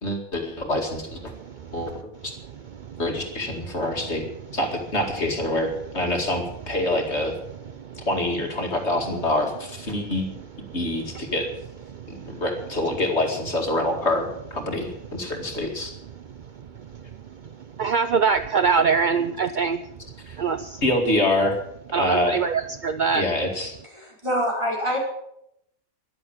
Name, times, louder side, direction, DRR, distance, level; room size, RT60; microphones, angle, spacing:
voice 1, 0.0-1.3 1.7-2.3 3.0-4.2 4.5-7.3 8.0-10.3 10.7-11.5 12.3-15.9 20.2-20.4 20.8-21.6 21.9-22.4 23.1-23.8, left 1 dB, 50° left, 2 dB, 2.5 m, -26 dB
voice 2, 12.0-12.4 17.8-19.8 20.4-20.8 21.9-23.2, right 5 dB, 55° right, 10 dB, 0.5 m, -23 dB
voice 3, 23.9-25.0, equal, 20° right, -2 dB, 4.8 m, -25 dB
14.5 x 11.5 x 7.2 m, 0.78 s
omnidirectional pair, 1.5 m